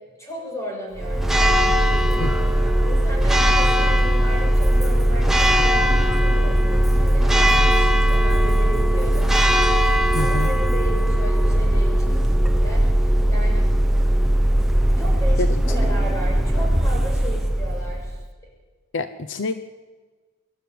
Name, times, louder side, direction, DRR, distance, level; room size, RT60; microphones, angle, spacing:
voice 1, 0.2-1.8 2.1-2.3 2.8-9.3 10.2-14.1 15.0-18.2, equal, 15° left, -1 dB, 6.8 m, -35 dB
Church bell, 1.0-18.2, equal, ahead, 1.0 m, -18 dB
voice 2, 10.1-10.5 15.4-15.5 18.9-19.5, left 3 dB, 55° left, 10 dB, 0.8 m, -26 dB
25.0 x 11.5 x 9.5 m, 1.4 s
head